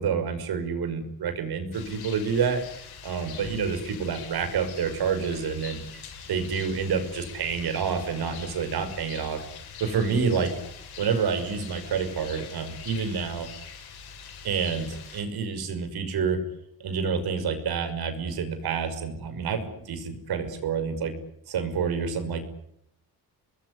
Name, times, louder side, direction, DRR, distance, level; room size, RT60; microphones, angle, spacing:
voice 1, 0.0-2.6 3.0-6.0 6.3-9.4 9.8-10.5 11.0-13.5 14.4-16.4 16.8-21.1 21.5-22.5, right 6 dB, 70° right, 9 dB, 5.9 m, -28 dB
Rain, 1.7-15.2, left 6 dB, 75° left, 7.9 m, -43 dB
26.5 x 21.0 x 9.9 m, 0.73 s
cardioid pair, 145°, 39 cm